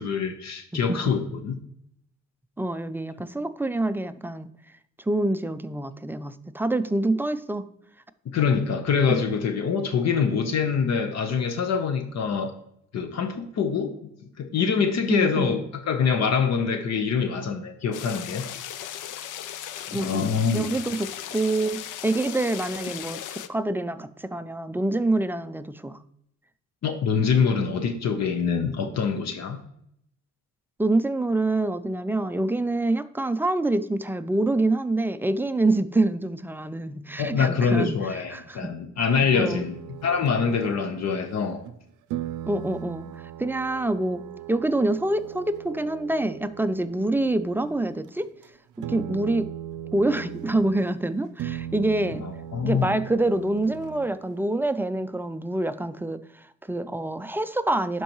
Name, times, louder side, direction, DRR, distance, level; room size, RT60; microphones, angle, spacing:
voice 1, 0.0-1.6 8.3-12.5 12.9-13.9 14.4-18.4 19.9-20.7 26.8-29.6 37.2-41.6 52.2-53.0, left 6 dB, 60° left, 7 dB, 0.9 m, -25 dB
voice 2, 0.7-1.1 2.6-4.5 5.1-7.7 9.1-9.2 15.1-15.5 19.9-26.0 30.8-38.0 38.3-38.7 39.3-39.6 42.5-44.2 44.5-48.3 48.8-49.5 49.9-52.2 52.6-58.0, right 2 dB, 5° right, 12 dB, 0.3 m, -26 dB
sound 1, 17.9-23.5, left 11 dB, 85° left, 0.6 m, -37 dB
sound 2, 39.1-41.8 42.1-48.0 48.2-48.5 48.8-51.0 51.4-54.3, right 11 dB, 85° right, 0.5 m, -39 dB
11.5 x 4.6 x 3.0 m, 0.73 s
cardioid pair, 90°, 30 cm